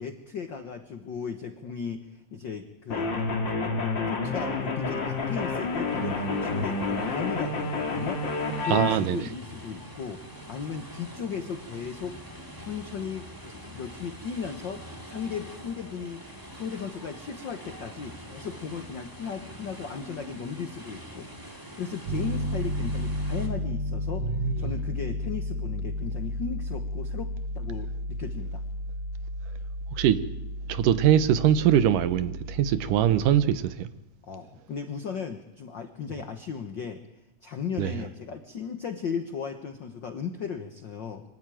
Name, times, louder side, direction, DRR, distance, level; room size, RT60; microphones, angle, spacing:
voice 1, 0.0-3.1 4.0-12.2 12.6-16.2 16.5-21.3 21.6-24.3 24.6-27.3 27.5-28.6 34.2-37.0 37.4-41.2, left 6 dB, 75° left, 1.0 m, -36 dB
sound 1, 2.9-9.0, left 3 dB, 35° left, 2.8 m, -29 dB
sound 2, 4.5-23.5, equal, 10° right, 1.8 m, -45 dB
voice 2, 8.6-9.3 24.2-24.7 29.9-30.2 30.7-33.9 37.8-37.9, right 10 dB, 80° right, 2.5 m, -23 dB
Piano, 22.1-33.4, equal, 55° right, 9.0 m, -33 dB
24.0 x 13.5 x 9.2 m
omnidirectional pair, 3.8 m